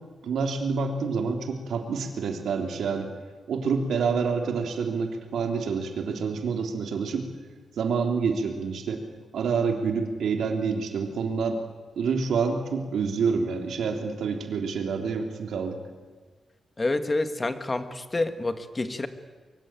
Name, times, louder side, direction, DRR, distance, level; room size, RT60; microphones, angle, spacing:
voice 1, 0.2-3.1 3.5-7.3 7.8-9.0 9.3-11.6 12.0-15.8, right 5 dB, 80° right, 4 dB, 3.5 m, -27 dB
voice 2, 16.8-19.1, left 2 dB, 20° left, 9 dB, 1.7 m, -28 dB
24.0 x 23.5 x 9.1 m, 1.4 s
wide cardioid pair, 130°, 0 cm